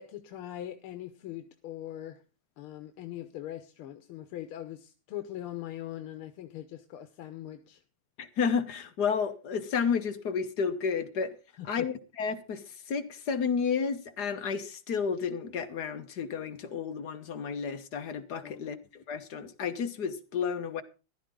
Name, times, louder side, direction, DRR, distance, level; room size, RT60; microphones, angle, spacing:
voice 1, 0.0-2.2 2.6-7.8 11.6-11.9 18.4-18.8, left 12 dB, 90° left, 1.8 m, -41 dB
voice 2, 8.2-11.3 11.6-20.8, left 6 dB, 55° left, 1.5 m, -31 dB
15.0 x 11.5 x 3.7 m
omnidirectional pair, 2.3 m